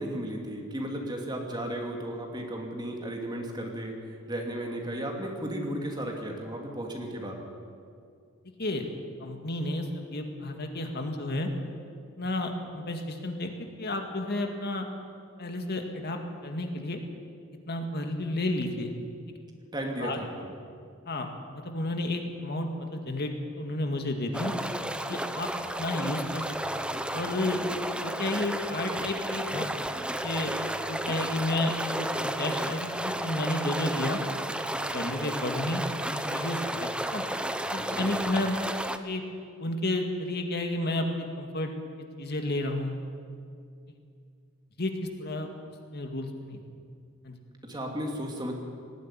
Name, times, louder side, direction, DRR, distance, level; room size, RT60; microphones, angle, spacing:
voice 1, 0.0-3.9 4.3-7.4 19.7-20.5 37.9-38.3 47.6-48.5, right 1 dB, 20° right, 1 dB, 2.7 m, -34 dB
voice 2, 9.2-11.5 12.2-14.9 15.4-17.0 17.7-18.9 20.0-20.2 21.1-21.3 21.5-24.5 25.1-25.5 25.8-26.8 27.1-27.6 28.0-29.7 30.2-30.5 30.9-34.2 34.8-35.8 36.1-37.3 37.7-38.6 39.0-39.2 39.6-41.7 42.2-43.0 43.9-44.0 44.8-44.9 45.2-45.5 45.9-46.6 47.2-47.4, left 1 dB, 50° left, 4 dB, 2.0 m, -31 dB
sound 1, 24.3-39.0, right 1 dB, 5° right, 0.8 m, -32 dB
19.0 x 14.5 x 9.8 m, 2.2 s
head